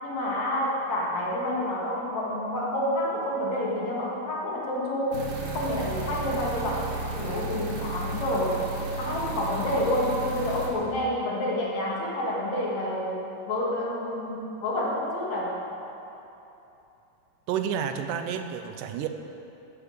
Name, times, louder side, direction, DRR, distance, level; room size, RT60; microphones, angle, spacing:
voice 1, 0.0-8.7 9.0-15.6, left 1 dB, 60° left, -4 dB, 3.1 m, -29 dB
sound 1, 5.1-10.7, right 3 dB, 50° right, 1.9 m, -34 dB
voice 2, 17.5-19.1, right 8 dB, 85° right, 7 dB, 2.2 m, -30 dB
15.0 x 7.4 x 6.8 m, 2.9 s
omnidirectional pair, 3.8 m